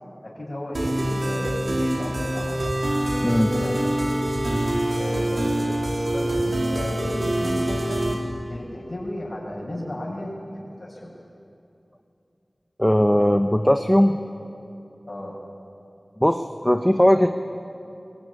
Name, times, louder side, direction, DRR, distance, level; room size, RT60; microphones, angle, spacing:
voice 1, 0.2-2.7 3.3-3.8 5.0-5.6 5.9-8.0 8.5-11.1 15.1-15.3, left 1 dB, 50° left, -7 dB, 6.9 m, -34 dB
sound 1, 0.7-8.1, right 1 dB, 85° right, 4.2 m, -25 dB
voice 2, 12.8-14.2 16.2-17.3, equal, 5° left, 6 dB, 1.1 m, -18 dB
23.0 x 22.0 x 9.9 m, 2.7 s
wide cardioid pair, 50°, 0 cm